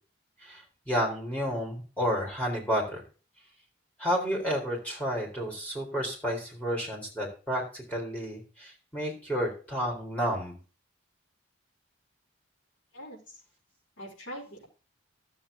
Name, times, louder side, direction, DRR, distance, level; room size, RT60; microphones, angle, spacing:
voice 1, 0.4-3.0 4.0-10.6, equal, 5° left, -2 dB, 4.0 m, -31 dB
voice 2, 12.9-13.4 14.0-14.6, equal, 70° left, -4 dB, 4.8 m, -43 dB
12.5 x 7.2 x 3.7 m, 0.37 s
head